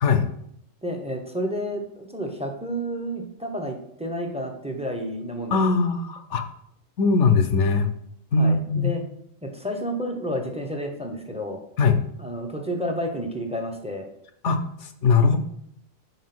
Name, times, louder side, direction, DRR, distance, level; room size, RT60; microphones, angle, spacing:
voice 1, 0.8-5.6 7.7-7.8 8.4-9.0 9.4-11.6 12.2-14.1, equal, 5° right, 3 dB, 0.7 m, -30 dB
voice 2, 5.5-6.4 7.0-7.9 8.3-8.9 11.8-12.0 14.4-15.4, left 4 dB, 65° left, 8 dB, 1.0 m, -20 dB
5.5 x 4.8 x 6.0 m, 0.72 s
omnidirectional pair, 1.4 m